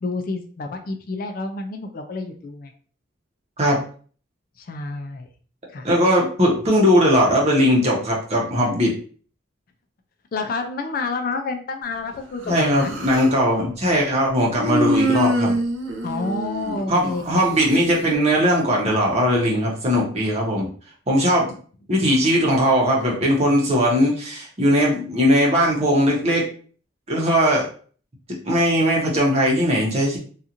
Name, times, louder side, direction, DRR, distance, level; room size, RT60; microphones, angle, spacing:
voice 1, 0.0-2.7 4.6-5.3 5.7-5.9 10.3-12.9 16.0-17.2, left 3 dB, 45° left, 5 dB, 0.3 m, -29 dB
voice 2, 5.8-8.9 12.5-15.5 16.9-20.7 21.1-21.5 21.9-26.4 27.1-27.7 28.4-30.2, equal, 35° right, -2 dB, 0.8 m, -19 dB
Human voice, 12.4-13.4 14.6-17.3, right 1 dB, 75° right, 0.4 m, -24 dB
2.8 x 2.4 x 2.5 m, 0.43 s
head